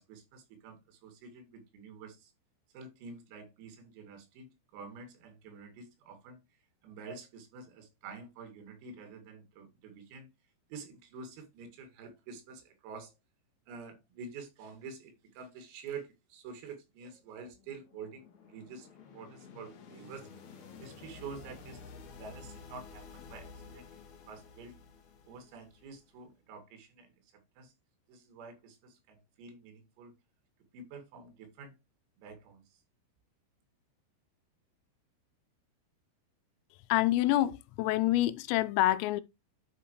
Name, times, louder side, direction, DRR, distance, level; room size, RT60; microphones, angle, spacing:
voice 1, 0.0-2.3 2.7-6.4 6.8-10.3 10.7-13.1 13.7-18.9 19.1-21.8 22.2-24.0 24.3-24.8 25.3-27.7 28.1-30.2 30.7-31.8 32.2-32.8, right 5 dB, 85° right, 5.2 m, -48 dB
sound 1, 17.4-26.2, left 4 dB, 60° left, 2.0 m, -52 dB
voice 2, 36.9-39.2, left 15 dB, 85° left, 3.3 m, -27 dB
11.5 x 5.6 x 3.1 m
omnidirectional pair, 6.0 m